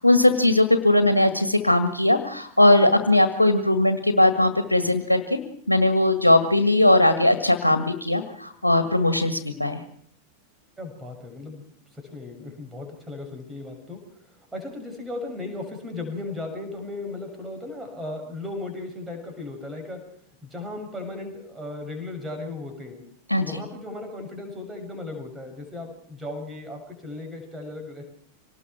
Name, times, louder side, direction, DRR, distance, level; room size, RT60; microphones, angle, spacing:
voice 1, 0.0-5.4 5.7-9.8 23.3-23.6, left 1 dB, 85° left, 7 dB, 1.8 m, -19 dB
voice 2, 10.8-14.0 14.5-20.0 20.4-23.0 23.4-28.0, left 2 dB, 10° right, 3 dB, 7.0 m, -36 dB
25.5 x 19.0 x 6.1 m, 0.65 s
figure-of-eight pair, 90°, 0 cm